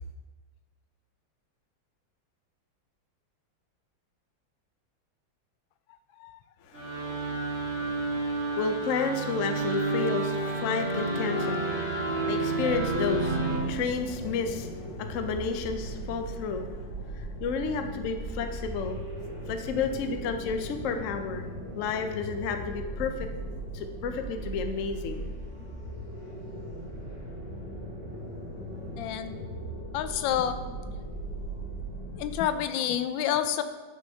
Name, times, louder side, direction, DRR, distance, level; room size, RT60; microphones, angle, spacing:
voice 1, 6.6-21.5 21.8-23.3 23.7-25.3, left 5 dB, 65° left, 6 dB, 0.7 m, -32 dB
sound 1, 6.7-13.6, right 2 dB, 50° right, 3.3 m, -30 dB
sound 2, 12.7-32.4, right 1 dB, 25° right, 1.9 m, -38 dB
voice 2, 29.0-29.4 29.9-30.6 32.1-33.6, left 10 dB, 85° left, 11 dB, 1.3 m, -28 dB
11.5 x 6.5 x 2.8 m, 1.3 s
omnidirectional pair, 2.1 m